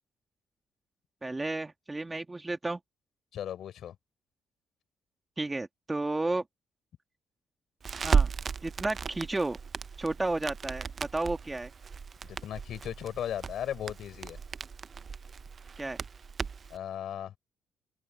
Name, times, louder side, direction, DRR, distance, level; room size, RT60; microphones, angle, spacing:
voice 1, 1.2-2.8 5.4-6.4 8.0-8.3 8.6-9.6 10.0-11.7 15.8-16.0, right 2 dB, 20° right, 2.3 m, -32 dB
voice 2, 3.3-4.0 12.2-14.4 16.7-17.4, left 10 dB, 70° left, 4.9 m, -37 dB
Crackle, 7.8-16.8, right 5 dB, 40° right, 0.6 m, -34 dB
open air
cardioid pair, 90°, 0 cm